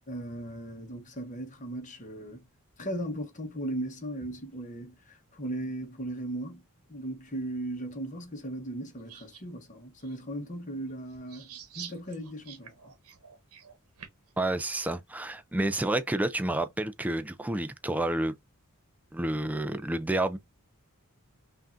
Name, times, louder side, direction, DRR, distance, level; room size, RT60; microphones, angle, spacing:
voice 1, 0.1-2.4 2.8-6.6 6.9-12.9, right 1 dB, 35° left, 1.1 m, -37 dB
sound 1, 9.1-9.4 10.0-10.2 11.1-14.3, right 8 dB, 75° right, 1.0 m, -47 dB
voice 2, 14.4-18.3 19.1-20.4, right 1 dB, 5° right, 0.3 m, -29 dB
5.7 x 2.5 x 2.5 m
head